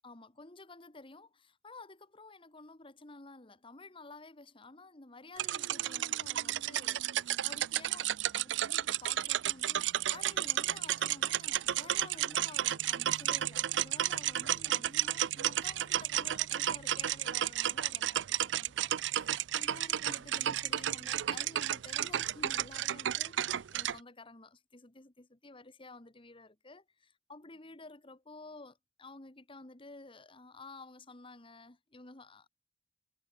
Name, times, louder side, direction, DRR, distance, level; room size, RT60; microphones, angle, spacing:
voice 1, 0.0-32.5, left 3 dB, 30° left, 1.7 m, -52 dB
sound 1, 5.4-24.0, right 12 dB, 80° right, 0.5 m, -32 dB
head